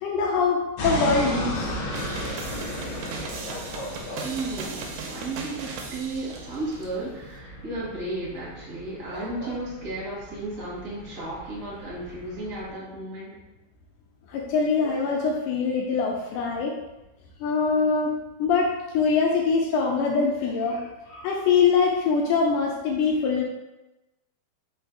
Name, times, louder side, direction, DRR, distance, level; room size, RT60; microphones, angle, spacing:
voice 1, 0.0-1.7 14.3-16.7 17.4-18.1 18.4-23.4, left 5 dB, 85° left, 0 dB, 1.8 m, -23 dB
airplane and dog, 0.8-12.7, equal, 70° left, 1.8 m, -35 dB
sound 1, 1.9-6.9, right 4 dB, 80° right, 1.8 m, -38 dB
voice 2, 4.2-13.3, right 2 dB, 65° right, -7 dB, 0.8 m, -34 dB
5.4 x 2.5 x 3.8 m, 1.0 s
omnidirectional pair, 4.1 m